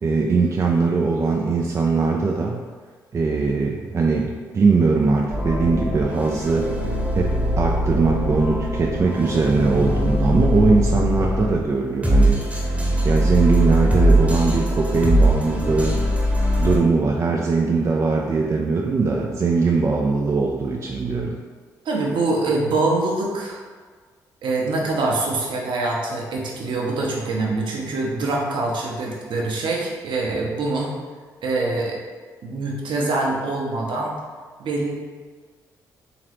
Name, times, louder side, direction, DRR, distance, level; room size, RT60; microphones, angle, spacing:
voice 1, 0.0-2.6 3.1-6.7 7.1-12.7 13.0-15.9 16.6-21.4, right 4 dB, 30° right, 0 dB, 0.4 m, -21 dB
sound 1, 5.3-11.6 12.0-16.8, equal, 15° right, 1.0 m, -21 dB
voice 2, 21.8-23.6 24.4-30.9 31.4-32.0 32.4-34.2 34.6-34.9, right 2 dB, 50° right, -1 dB, 0.7 m, -24 dB
3.7 x 2.9 x 3.0 m, 1.5 s
figure-of-eight pair, 40°, 10 cm